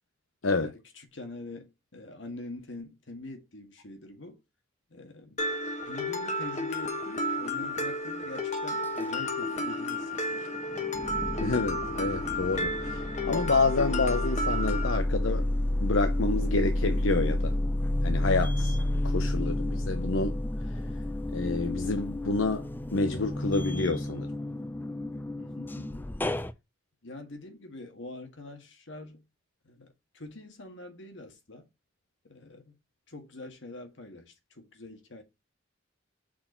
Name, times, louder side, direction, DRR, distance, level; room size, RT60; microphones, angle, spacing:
voice 1, 0.4-4.4 4.9-5.4 5.9-10.7 25.4-26.1 27.0-29.3 29.6-31.7 32.2-32.8 33.1-35.2, left 2 dB, 70° left, 1.7 m, -44 dB
Mallet percussion, 5.4-15.0, left 1 dB, 35° left, 1.2 m, -32 dB
sound 1, 9.4-10.2 10.6-26.5, left 1 dB, 10° left, 0.4 m, -30 dB
voice 2, 11.4-15.5 15.8-17.6 18.0-18.8 19.0-20.4 21.3-24.3, left 3 dB, 90° left, 0.8 m, -28 dB
6.0 x 4.5 x 4.3 m
head